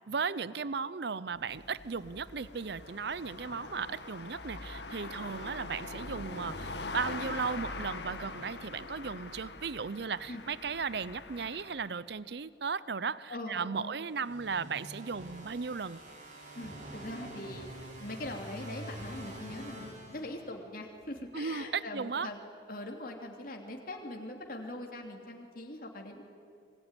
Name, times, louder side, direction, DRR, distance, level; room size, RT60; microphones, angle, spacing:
voice 1, 0.1-16.0 21.3-22.3, right 5 dB, 60° right, 17 dB, 0.6 m, -36 dB
sound 1, 1.3-12.0, left 3 dB, 65° left, 1.9 m, -43 dB
voice 2, 13.3-14.0 16.5-22.4 22.7-26.2, left 1 dB, 50° left, 2 dB, 2.9 m, -42 dB
laser sipper, 14.1-20.8, right 1 dB, 40° right, 6.8 m, -46 dB
26.5 x 22.5 x 9.8 m, 2.3 s
head